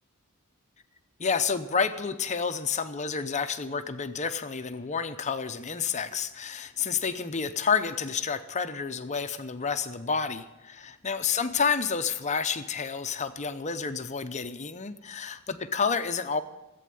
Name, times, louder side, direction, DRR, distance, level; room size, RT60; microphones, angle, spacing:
voice 1, 1.2-16.4, left 6 dB, 35° left, 9 dB, 0.7 m, -29 dB
15.0 x 8.5 x 9.4 m, 1.0 s
head